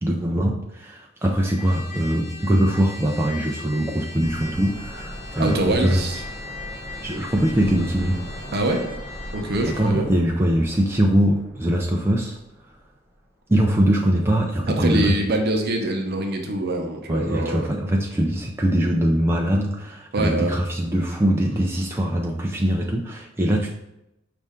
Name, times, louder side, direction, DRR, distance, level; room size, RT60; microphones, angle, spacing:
voice 1, 0.0-6.0 7.0-8.2 9.7-12.4 13.5-15.2 17.1-23.7, equal, 10° right, -1 dB, 0.3 m, -22 dB
Trumpet, 1.4-10.0, left 3 dB, 55° left, 1.2 m, -40 dB
sound 1, 4.2-12.9 13.2-13.3, equal, 5° left, 0.8 m, -39 dB
voice 2, 5.4-6.2 8.5-8.8 9.3-10.1 14.7-17.7 20.1-20.5, right 1 dB, 55° right, 3 dB, 0.7 m, -24 dB
5.4 x 2.5 x 3.6 m, 0.86 s
head